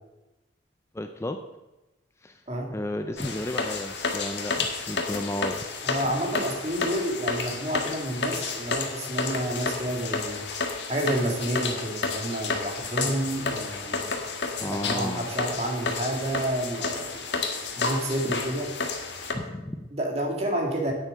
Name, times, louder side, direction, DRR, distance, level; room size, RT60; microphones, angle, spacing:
voice 1, 0.9-1.4 2.2-2.4 2.7-5.6 14.6-15.3 19.3-19.9, left 1 dB, 15° left, 6 dB, 0.5 m, -33 dB
sound 1, 3.2-19.3, left 4 dB, 65° left, 1.6 m, -31 dB
voice 2, 5.8-10.4 10.9-14.1 14.6-17.2 17.8-18.7 19.9-20.9, right 1 dB, 35° right, 1 dB, 2.2 m, -29 dB
9.4 x 8.6 x 6.6 m, 1.0 s
head